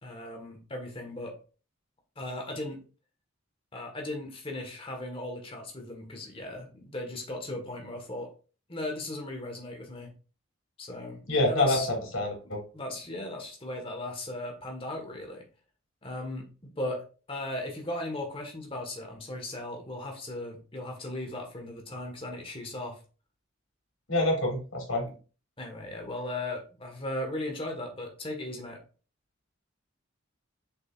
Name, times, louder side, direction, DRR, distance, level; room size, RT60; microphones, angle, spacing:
voice 1, 0.0-1.3 2.1-2.8 3.7-8.3 8.7-10.1 10.8-11.9 12.7-15.5 16.0-23.0 25.0-25.1 25.6-28.8, left 1 dB, 25° left, 2 dB, 1.7 m, -37 dB
voice 2, 11.3-11.8 12.1-12.6 24.1-25.1, left 2 dB, 80° left, 0 dB, 3.3 m, -26 dB
7.1 x 5.3 x 2.6 m, 0.36 s
head